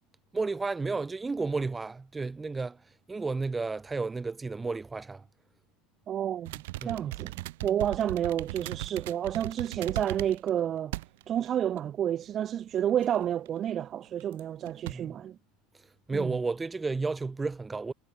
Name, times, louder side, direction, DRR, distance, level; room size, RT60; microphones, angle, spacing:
voice 1, 0.3-2.8 3.1-5.2 6.8-7.0 14.9-15.2 16.1-17.9, right 3 dB, 15° right, 5.3 m, -32 dB
voice 2, 6.1-10.9 11.3-15.4 16.1-16.4, right 10 dB, 40° right, 2.4 m, -30 dB
sound 1, 6.5-10.5 10.9-11.5 11.8-11.9 13.0-13.5 14.2-14.4 14.7-14.9, right 19 dB, 70° right, 5.0 m, -38 dB
hypercardioid pair, 75°, 0 cm